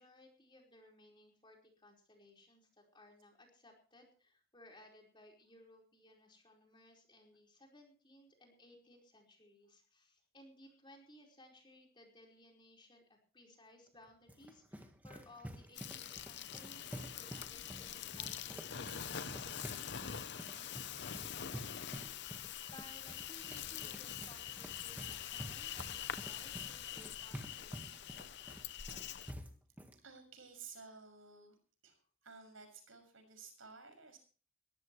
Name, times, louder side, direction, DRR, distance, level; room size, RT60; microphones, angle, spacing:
voice 1, 0.0-28.2, left 1 dB, 20° left, 1 dB, 4.6 m, -61 dB
sound 1, 13.9-30.0, equal, 10° right, 1.5 m, -50 dB
Insect, 15.7-29.3, left 9 dB, 55° left, 0.8 m, -45 dB
voice 2, 30.0-31.5 31.8-32.0 32.2-34.2, right 5 dB, 70° right, 6 dB, 6.4 m, -54 dB
22.0 x 15.0 x 3.2 m, 0.38 s
head